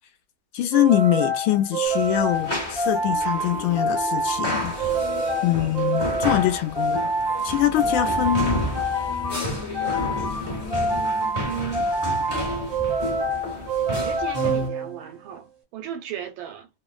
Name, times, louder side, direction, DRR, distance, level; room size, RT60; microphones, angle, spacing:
voice 1, 0.5-4.7 5.4-7.0 7.4-8.6, left 12 dB, 85° left, 1.4 m, -23 dB
sound 1, 0.7-15.3, right 1 dB, 40° right, 0.5 m, -27 dB
sound 2, 1.9-14.7, equal, 40° left, 0.5 m, -32 dB
sound 3, 2.2-12.7, left 8 dB, 70° left, 0.9 m, -41 dB
voice 2, 11.4-11.9 13.9-16.7, right 9 dB, 80° right, 1.4 m, -35 dB
3.6 x 2.0 x 2.3 m
omnidirectional pair, 2.2 m